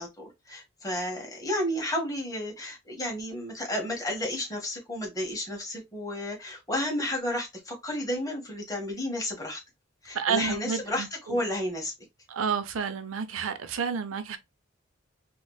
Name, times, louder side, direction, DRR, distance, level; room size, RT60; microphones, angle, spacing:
voice 1, 0.0-9.6 10.0-11.9, left 1 dB, 15° left, 1.3 m, -32 dB
voice 2, 10.1-11.4 12.3-14.4, right 6 dB, 80° right, 0.5 m, -30 dB
3.1 x 3.0 x 2.2 m
head